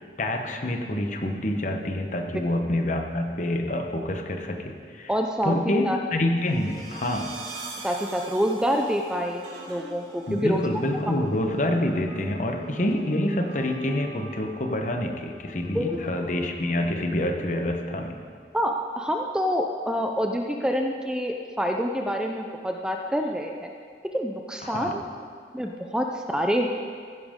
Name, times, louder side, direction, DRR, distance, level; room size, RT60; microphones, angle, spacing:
voice 1, 0.0-5.1 5.4-7.3 10.3-18.1 24.6-25.0, left 1 dB, 45° left, 4 dB, 1.0 m, -27 dB
voice 2, 5.1-5.5 5.8-6.0 7.8-10.6 15.7-15.9 18.5-23.7 24.1-25.0 25.5-26.7, equal, 5° right, 3 dB, 0.4 m, -27 dB
sound 1, 6.2-16.8, right 3 dB, 75° right, 2.9 m, -44 dB
15.0 x 10.5 x 3.7 m, 2.1 s
head